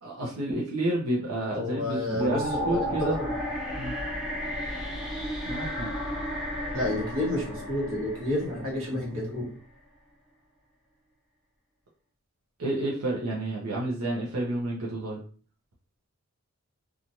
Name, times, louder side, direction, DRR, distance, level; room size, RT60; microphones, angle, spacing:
voice 1, 0.0-3.2 3.7-3.9 5.4-5.9 12.6-15.2, right 1 dB, 90° right, -4 dB, 0.7 m, -30 dB
voice 2, 1.5-3.4 6.7-9.5, left 1 dB, 65° right, -4 dB, 1.3 m, -30 dB
sound 1, 2.2-9.3, equal, ahead, 0.6 m, -33 dB
3.0 x 2.3 x 2.6 m, 0.41 s
head